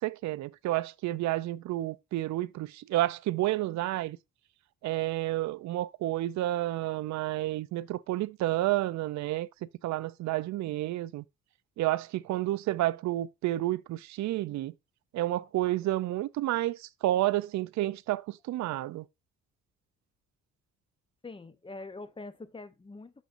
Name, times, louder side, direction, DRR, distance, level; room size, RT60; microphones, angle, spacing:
voice 1, 0.0-4.2 4.8-9.5 9.8-11.2 11.8-14.7 15.1-19.1, right 15 dB, 65° right, 0.5 m, -30 dB
voice 2, 21.2-23.2, left 3 dB, 15° left, 0.7 m, -44 dB
6.8 x 6.1 x 2.5 m
cardioid pair, 90°, 30 cm